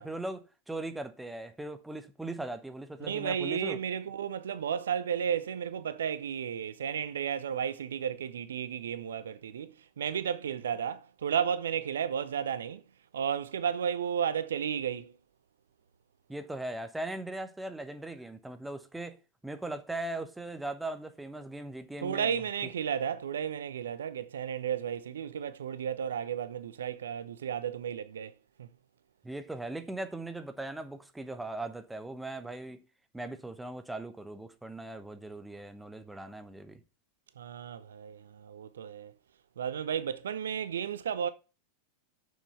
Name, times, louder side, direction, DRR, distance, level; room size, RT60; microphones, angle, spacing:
voice 1, 0.0-3.8 16.3-19.2 19.4-22.4 29.2-32.9 33.1-36.8, right 2 dB, 5° right, 1.0 m, -39 dB
voice 2, 3.0-12.8 13.1-15.1 22.0-28.3 28.6-28.7 37.4-39.1 39.6-41.3, right 8 dB, 65° right, 0.5 m, -33 dB
6.8 x 6.3 x 6.8 m
figure-of-eight pair, 90°, 0 cm